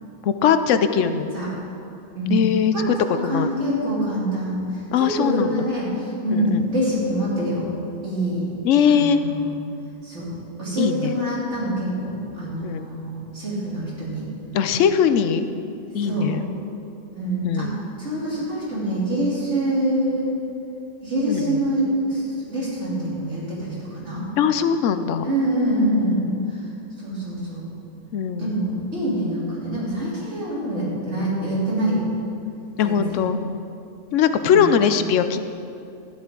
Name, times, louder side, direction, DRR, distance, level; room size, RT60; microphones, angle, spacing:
voice 1, 0.2-1.3 2.3-2.9 3.2-3.5 4.9-5.7 6.3-6.6 8.6-9.2 10.8-11.1 12.6-12.9 14.5-15.5 15.9-16.4 17.4-17.8 21.3-21.6 24.4-25.3 28.1-28.6 32.8-33.4 34.1-35.4, left 7 dB, 80° left, 10 dB, 0.9 m, -20 dB
voice 2, 1.0-1.5 2.1-7.7 8.0-8.5 8.9-9.5 10.0-10.3 10.6-14.3 16.0-16.3 17.2-20.3 21.0-24.3 25.2-26.6 27.0-27.7 28.4-32.1 32.8-33.2 34.4-34.6, right 1 dB, 65° right, -8 dB, 3.6 m, -25 dB
12.5 x 10.5 x 3.8 m, 2.6 s
omnidirectional pair, 1.3 m